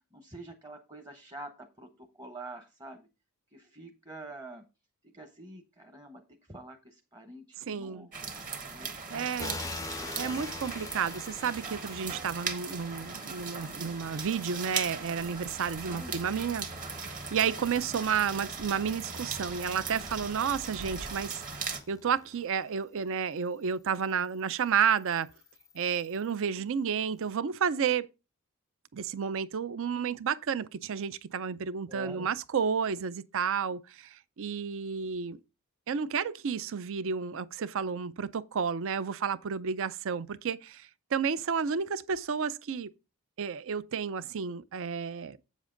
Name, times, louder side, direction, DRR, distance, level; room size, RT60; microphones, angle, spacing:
voice 1, 0.0-3.1 3.5-4.6 5.0-8.2 8.7-10.4 16.0-16.1 31.9-32.3, right 2 dB, 20° right, 0.9 m, -47 dB
voice 2, 7.7-8.1 9.1-9.6 10.2-16.7 16.9-25.3 25.7-28.1 28.9-35.4 35.9-42.9 43.4-45.4, right 7 dB, 60° right, 0.5 m, -31 dB
sound 1, 8.1-21.8, right 5 dB, 40° right, 1.4 m, -39 dB
sound 2, 9.4-22.8 23.5-26.4, left 3 dB, 15° left, 0.4 m, -46 dB
8.2 x 7.3 x 3.8 m
head